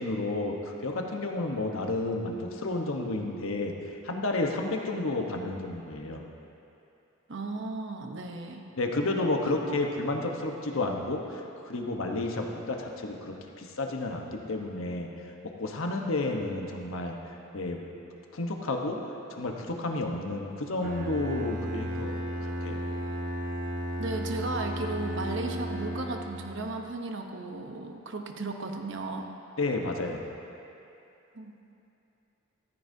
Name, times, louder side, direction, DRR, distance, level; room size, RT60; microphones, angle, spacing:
voice 1, 0.0-3.7 4.0-6.2 8.8-11.2 11.6-15.1 15.4-17.2 17.5-17.8 18.3-19.0 19.3-22.1 22.4-22.8 29.6-30.2, left 2 dB, 75° left, 2 dB, 1.1 m, -31 dB
voice 2, 7.3-8.6 9.5-9.6 24.0-29.3 31.3-31.5, right 2 dB, 60° right, 3 dB, 0.9 m, -35 dB
Bowed string instrument, 20.8-26.7, equal, 40° right, 1.0 m, -34 dB
14.5 x 14.0 x 2.8 m, 2.8 s
head